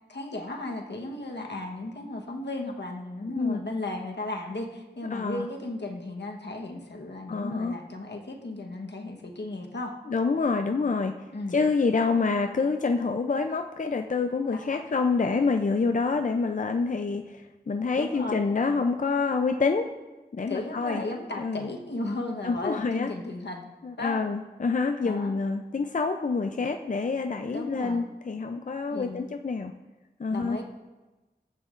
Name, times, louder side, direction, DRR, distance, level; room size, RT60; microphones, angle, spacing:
voice 1, 0.1-10.0 11.3-11.6 14.5-14.8 18.0-18.4 20.5-23.7 24.0-24.2 25.0-25.3 27.5-28.0 28.9-29.2 30.3-30.6, left 2 dB, 80° left, 1 dB, 1.1 m, -35 dB
voice 2, 5.1-5.5 7.3-7.8 10.1-11.1 11.5-19.9 20.3-21.0 21.4-21.7 22.4-23.1 23.8-29.7 30.2-30.6, left 4 dB, 45° left, 6 dB, 0.4 m, -27 dB
14.5 x 8.3 x 2.5 m, 1.1 s
wide cardioid pair, 45°, 18 cm